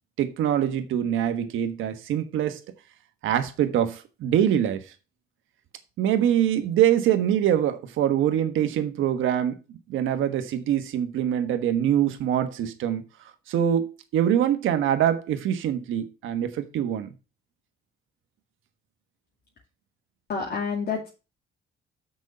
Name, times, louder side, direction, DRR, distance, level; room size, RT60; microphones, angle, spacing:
voice 1, 0.2-2.6 3.2-4.8 6.0-9.6 9.9-13.0 13.5-17.1, right 10 dB, 85° right, 1.3 m, -24 dB
voice 2, 20.3-21.1, left 5 dB, 55° left, 2.3 m, -28 dB
6.3 x 5.5 x 6.5 m
cardioid pair, 90°, 20 cm